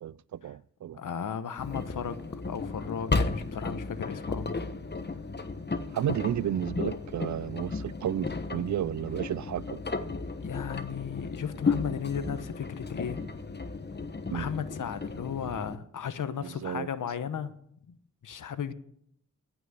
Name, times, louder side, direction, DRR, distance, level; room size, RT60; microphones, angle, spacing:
voice 1, 0.0-1.0 5.9-9.8 14.3-14.5 16.4-16.9, right 10 dB, 70° right, 0.4 m, -32 dB
voice 2, 0.9-2.2 2.4-4.5 10.4-13.2 14.3-17.5 17.9-18.0 18.2-18.7, left 7 dB, 90° left, 1.0 m, -35 dB
Engine, 1.6-15.8, left 3 dB, 35° left, 1.1 m, -34 dB
17.5 x 6.1 x 8.5 m
cardioid pair, 65°, 30 cm